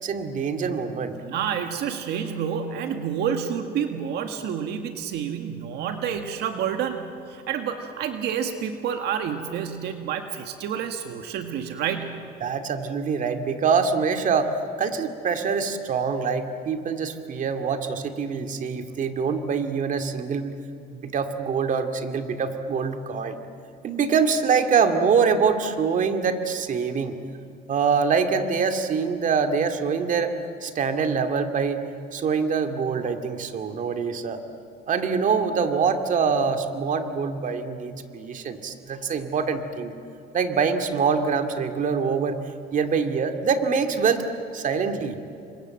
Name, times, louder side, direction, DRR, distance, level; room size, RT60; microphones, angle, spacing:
voice 1, 0.0-1.1 12.4-20.6 21.0-23.4 23.8-27.2 27.7-31.8 32.1-34.4 34.9-39.9 40.3-42.4 42.7-44.3 44.5-45.2, right 5 dB, 50° right, 6 dB, 2.3 m, -24 dB
voice 2, 1.1-12.2, right 8 dB, 80° right, 6 dB, 1.9 m, -29 dB
30.0 x 25.5 x 7.8 m, 2.7 s
cardioid pair, 110°, 17 cm